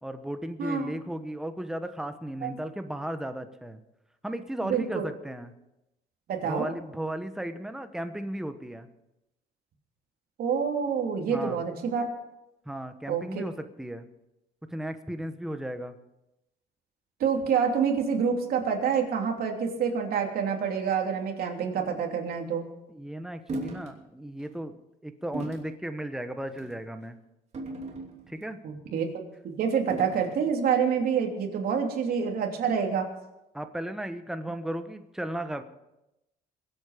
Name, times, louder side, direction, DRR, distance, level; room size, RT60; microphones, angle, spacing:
voice 1, 0.0-3.8 4.2-5.5 6.4-8.9 11.3-11.6 12.7-14.1 14.7-16.0 22.9-27.2 28.3-28.6 33.5-35.6, right 1 dB, 5° right, 8 dB, 1.1 m, -35 dB
voice 2, 0.6-1.0 2.4-2.5 4.6-5.0 6.3-6.7 10.4-12.1 13.1-13.5 17.2-22.6 28.6-29.1 29.6-33.1, right 6 dB, 60° right, 2 dB, 3.1 m, -27 dB
sound 1, 23.5-23.9 24.4-24.6 25.3-25.7 26.5-26.8 27.5-28.5 29.9-30.4, right 2 dB, 40° right, 2.8 m, -37 dB
23.0 x 8.6 x 5.0 m, 0.91 s
cardioid pair, 110°, 17 cm